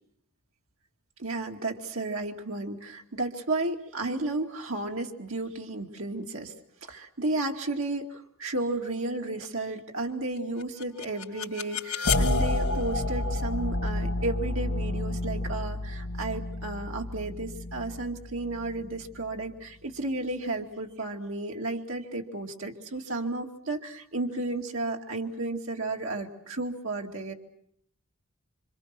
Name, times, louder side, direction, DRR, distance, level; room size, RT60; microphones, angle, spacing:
voice 1, 1.2-6.5 6.8-27.3, right 2 dB, 75° right, 1 dB, 2.5 m, -33 dB
sound 1, 10.6-19.5, left 2 dB, 90° left, 2.1 m, -30 dB
28.0 x 26.0 x 6.1 m, 0.69 s
head